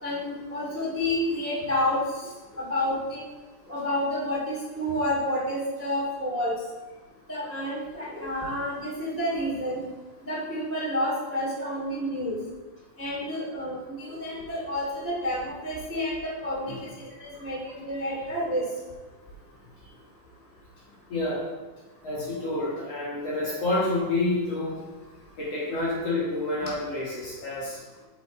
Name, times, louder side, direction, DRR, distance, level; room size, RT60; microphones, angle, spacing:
voice 1, 0.0-2.0 2.6-3.2 3.7-6.5 7.3-9.8 10.2-12.4 13.0-18.6, left 1 dB, 20° right, -5 dB, 0.3 m, -29 dB
voice 2, 21.1-21.4 22.0-24.8 25.4-27.8, left 2 dB, 55° left, -5 dB, 2.0 m, -28 dB
8.0 x 6.0 x 4.4 m, 1.2 s
omnidirectional pair, 4.6 m